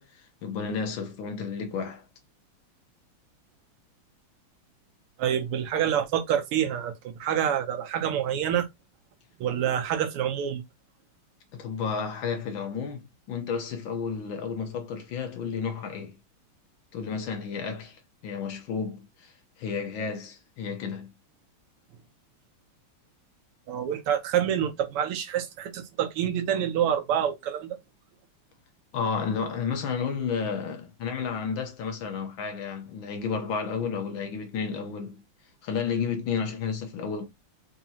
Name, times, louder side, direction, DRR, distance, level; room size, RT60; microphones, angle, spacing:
voice 1, 0.0-2.0 11.5-16.2 16.9-21.1 28.9-35.2 35.6-37.3, left 6 dB, 70° left, 1.6 m, -32 dB
voice 2, 5.2-8.7 9.4-10.6 23.7-27.8, right 9 dB, 85° right, 1.7 m, -27 dB
4.7 x 2.9 x 2.7 m
omnidirectional pair, 2.4 m